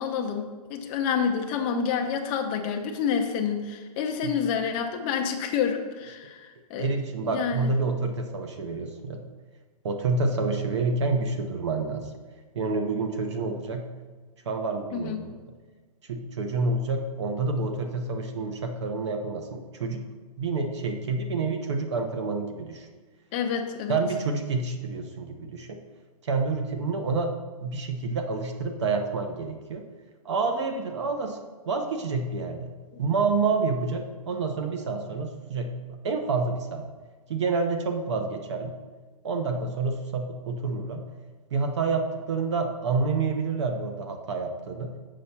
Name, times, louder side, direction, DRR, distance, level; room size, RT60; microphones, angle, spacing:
voice 1, 0.0-7.0 7.2-7.7 14.9-15.2 23.3-24.0, left 7 dB, 15° left, 4 dB, 0.5 m, -28 dB
voice 2, 6.8-9.2 9.8-12.1 12.5-13.8 14.5-15.4 16.1-20.0 20.4-22.9 23.9-25.8 26.2-27.3 27.6-29.8 30.2-31.4 31.7-32.7 33.0-35.7 36.0-36.8 37.3-38.7 39.2-41.0 41.5-44.9, right 4 dB, 45° right, 5 dB, 0.9 m, -28 dB
7.1 x 5.1 x 5.7 m, 1.4 s
hypercardioid pair, 165°, 20 cm